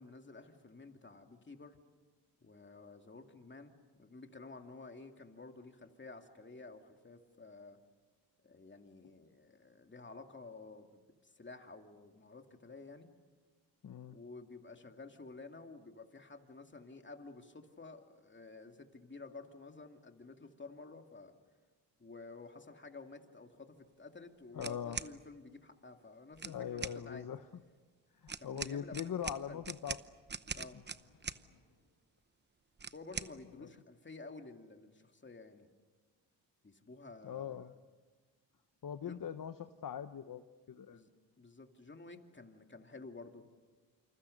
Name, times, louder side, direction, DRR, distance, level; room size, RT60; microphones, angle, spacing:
voice 1, 0.0-1.8 2.4-7.8 8.4-13.1 14.1-21.4 22.0-27.3 28.4-29.6 30.5-30.8 32.9-35.7 36.6-37.7 39.0-39.2 40.9-41.1 41.4-43.6, left 3 dB, 25° left, 5 dB, 2.5 m, -52 dB
voice 2, 13.8-14.2 24.5-25.0 26.4-27.4 28.1-30.0 33.6-33.7 37.2-37.7 38.8-41.0, left 8 dB, 50° left, 9 dB, 1.0 m, -41 dB
sound 1, 24.6-25.1 26.3-27.0 28.3-31.4 32.8-33.3, right 5 dB, 25° right, 0.8 m, -42 dB
sound 2, 30.4-31.9, left 5 dB, 90° left, 5.8 m, -68 dB
28.0 x 27.0 x 6.6 m, 1.4 s
cardioid pair, 80°, 43 cm